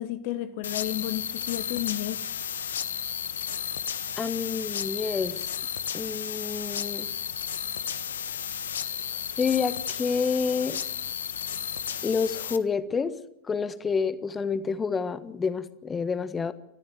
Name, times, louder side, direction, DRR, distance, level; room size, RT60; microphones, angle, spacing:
voice 1, 0.0-2.2, left 14 dB, 45° left, 1.1 m, -32 dB
sound 1, 0.6-12.6, left 8 dB, 65° left, 1.2 m, -33 dB
voice 2, 4.2-5.5 5.9-7.1 9.4-10.8 12.0-13.1 13.4-16.5, left 5 dB, 15° left, 1.4 m, -28 dB
30.0 x 14.0 x 7.9 m
figure-of-eight pair, 90°, 0 cm